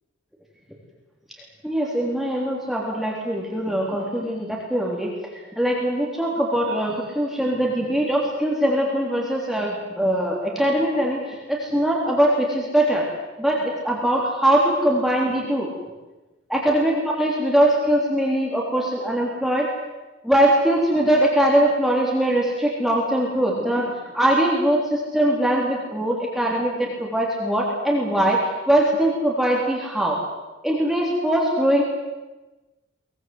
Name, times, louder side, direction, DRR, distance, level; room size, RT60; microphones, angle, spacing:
voice 1, 1.6-5.1 5.6-13.1 13.4-15.7 16.5-19.7 20.2-28.4 28.7-30.2 30.6-31.8, right 1 dB, ahead, -3 dB, 3.6 m, -21 dB
23.0 x 21.5 x 7.9 m, 1.1 s
head